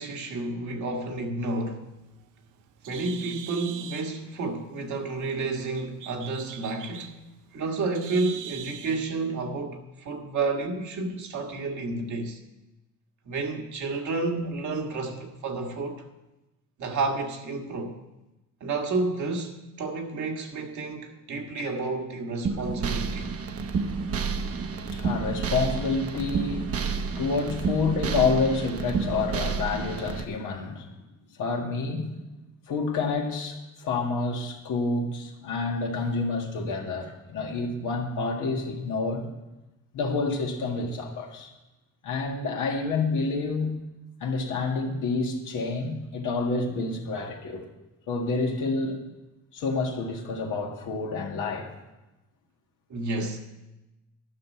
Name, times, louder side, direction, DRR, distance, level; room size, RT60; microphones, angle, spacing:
voice 1, 0.0-1.9 2.9-7.1 7.5-12.4 13.3-16.0 16.8-18.0 18.6-23.3 52.9-53.4, right 3 dB, 70° right, 1.7 m, -30 dB
Bird, 1.8-9.1, right 9 dB, 90° right, 0.8 m, -43 dB
sound 1, 22.4-30.2, right 5 dB, 50° right, 0.9 m, -30 dB
voice 2, 24.9-30.9 31.4-32.1 32.7-39.3 39.9-41.5 42.0-43.8 44.2-47.6 48.1-49.0 49.5-51.7, left 4 dB, 85° left, 2.0 m, -28 dB
12.0 x 6.0 x 8.3 m
cardioid pair, 90°, 30 cm